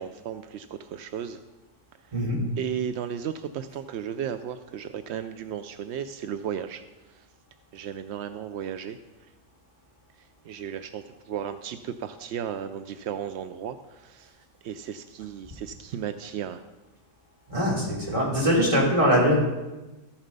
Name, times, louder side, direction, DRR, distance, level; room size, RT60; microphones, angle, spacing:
voice 1, 0.0-1.4 2.6-6.8 7.1-7.3 7.7-9.0 10.2-14.4 14.6-16.6, right 8 dB, 70° right, 10 dB, 0.6 m, -34 dB
voice 2, 17.5-19.4, equal, 20° right, -4 dB, 3.1 m, -22 dB
13.5 x 7.3 x 5.3 m, 1.1 s
omnidirectional pair, 1.6 m